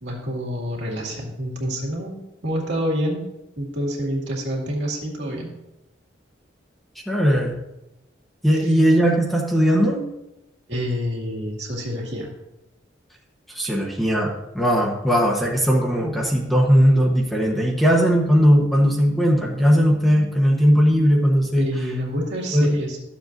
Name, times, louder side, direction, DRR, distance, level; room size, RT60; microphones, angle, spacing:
voice 1, 0.0-2.2 2.4-3.2 3.6-5.5 10.7-12.3 21.6-23.0, equal, 70° right, -3 dB, 2.2 m, -27 dB
voice 2, 7.1-7.6 8.4-10.1 13.5-21.7 22.5-22.8, equal, ahead, -2 dB, 1.0 m, -18 dB
12.5 x 7.4 x 2.6 m, 0.94 s
head